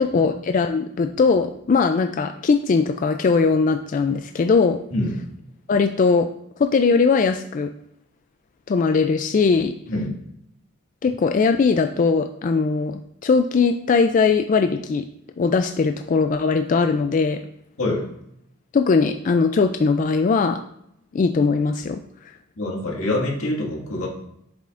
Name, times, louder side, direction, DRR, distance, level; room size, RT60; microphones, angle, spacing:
voice 1, 0.0-4.8 5.7-6.3 6.6-7.7 8.7-9.7 11.0-15.0 15.4-17.4 18.7-20.6 21.1-22.0, left 4 dB, 40° left, 7 dB, 0.3 m, -20 dB
voice 2, 22.6-24.1, left 1 dB, 90° left, -1 dB, 1.9 m, -25 dB
7.5 x 7.0 x 2.5 m, 0.75 s
head